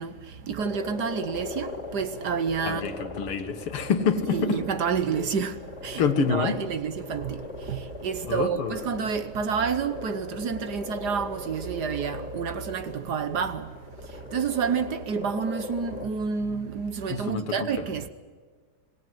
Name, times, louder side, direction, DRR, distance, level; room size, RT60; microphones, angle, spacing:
voice 1, 0.0-2.8 4.3-6.0 6.3-13.7 14.3-18.1, right 6 dB, 55° right, 1.4 m, -29 dB
sound 1, 0.6-16.1, left 4 dB, 30° left, 2.4 m, -40 dB
voice 2, 2.7-4.6 6.0-6.6 8.3-8.8 17.1-17.5, left 6 dB, 90° left, 2.4 m, -26 dB
26.5 x 19.0 x 7.9 m
omnidirectional pair, 2.4 m